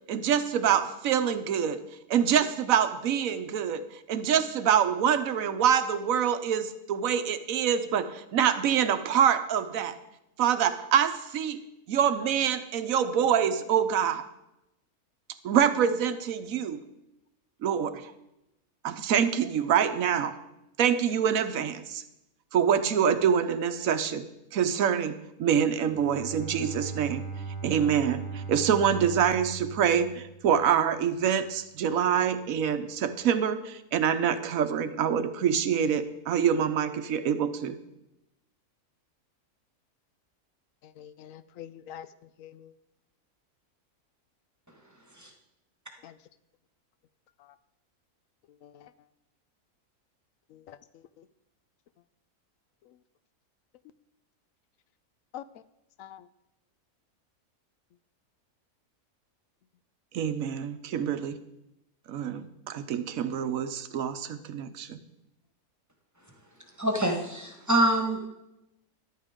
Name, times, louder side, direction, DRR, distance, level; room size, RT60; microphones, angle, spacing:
voice 1, 0.1-1.8 2.1-10.0 10.4-11.6 11.9-14.2 15.4-16.8 17.6-18.1 18.8-20.4 20.8-22.0 22.5-27.2 27.6-37.8 60.1-61.4 62.1-65.0, right 8 dB, 70° right, 1.1 m, -26 dB
Bowed string instrument, 25.8-30.8, right 4 dB, 40° right, 1.3 m, -39 dB
voice 2, 40.8-42.1 42.4-42.7 46.0-46.2 47.4-47.5 48.6-48.9 50.5-50.8 51.2-51.3 55.3-55.4 56.0-56.3, left 10 dB, 70° left, 0.9 m, -45 dB
voice 3, 66.8-68.3, right 1 dB, 10° right, 1.5 m, -25 dB
14.0 x 11.5 x 3.7 m
omnidirectional pair, 1.6 m